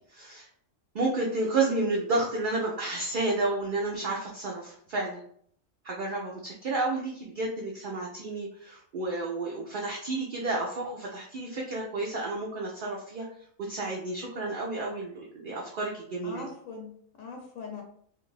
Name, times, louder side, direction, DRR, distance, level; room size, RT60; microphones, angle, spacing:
voice 1, 0.9-5.2 5.8-13.3 13.7-16.4, right 2 dB, 65° right, -2 dB, 0.5 m, -31 dB
voice 2, 16.2-17.8, left 4 dB, 85° left, 1 dB, 1.0 m, -41 dB
2.4 x 2.4 x 3.1 m, 0.63 s
omnidirectional pair, 1.4 m